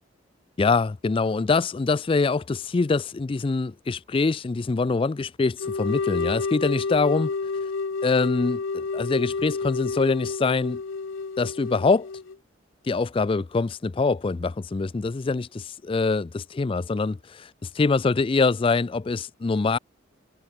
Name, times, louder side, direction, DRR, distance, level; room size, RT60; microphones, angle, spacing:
voice 1, 0.6-7.3 8.0-10.8 11.4-12.1 12.8-19.8, left 4 dB, 25° left, 0.3 m, -24 dB
sound 1, 5.6-12.3, left 4 dB, 70° left, 0.6 m, -30 dB
head